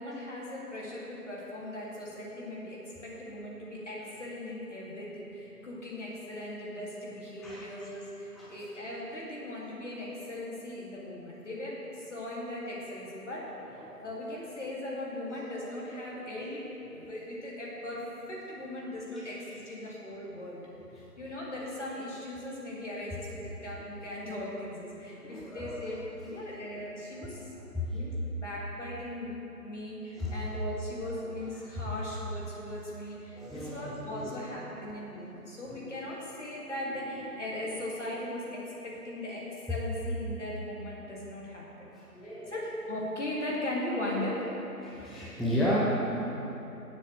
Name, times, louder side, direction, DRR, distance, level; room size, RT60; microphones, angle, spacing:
voice 1, 0.0-16.7 16.9-20.6 21.2-26.0 26.2-27.5 27.9-29.3 29.6-41.9 42.2-44.5, left 1 dB, 45° left, -5 dB, 2.4 m, -38 dB
voice 2, 7.4-7.7 8.4-8.5 13.8-13.9 15.3-16.4 16.7-17.1 20.9-21.0 25.1-25.8 27.7-28.0 30.2-30.5 31.7-31.8 33.3-34.3 41.9-42.5 44.8-45.8, left 1 dB, ahead, -8 dB, 0.5 m, -35 dB
14.0 x 7.5 x 3.2 m, 3.0 s
figure-of-eight pair, 170°, 48 cm